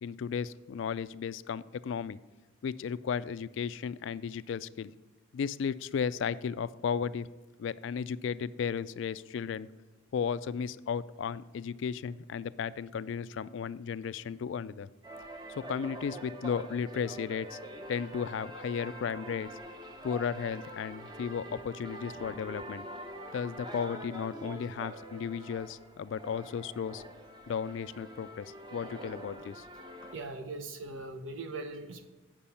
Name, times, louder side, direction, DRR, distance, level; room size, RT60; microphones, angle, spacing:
voice 1, 0.0-2.2 2.6-4.9 5.3-7.3 7.6-9.7 10.1-14.9 15.5-17.6 17.9-19.5 20.0-22.8 23.3-27.0 27.5-29.6, left 7 dB, 65° left, 17 dB, 0.3 m, -34 dB
sound 1, 15.0-30.2, right 1 dB, 20° right, 0.7 m, -45 dB
voice 2, 30.1-32.1, right 3 dB, 75° right, 8 dB, 0.8 m, -40 dB
8.6 x 6.0 x 5.6 m, 1.2 s
head